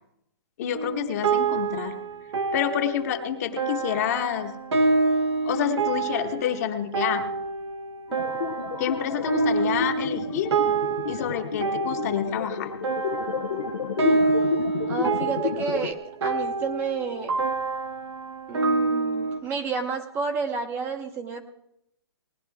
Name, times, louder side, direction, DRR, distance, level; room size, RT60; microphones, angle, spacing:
voice 1, 0.6-2.0 2.5-4.6 5.4-7.3 8.8-10.5 11.1-12.7, left 9 dB, 35° left, 5 dB, 1.1 m, -28 dB
sound 1, 0.7-19.4, right 4 dB, 85° right, 1.6 m, -27 dB
sound 2, 8.1-15.9, left 7 dB, 85° left, 1.0 m, -32 dB
voice 2, 14.9-17.3 18.5-21.5, right 5 dB, 15° right, 4 dB, 0.8 m, -30 dB
19.0 x 11.0 x 3.5 m, 0.78 s
hypercardioid pair, 160°, 14 cm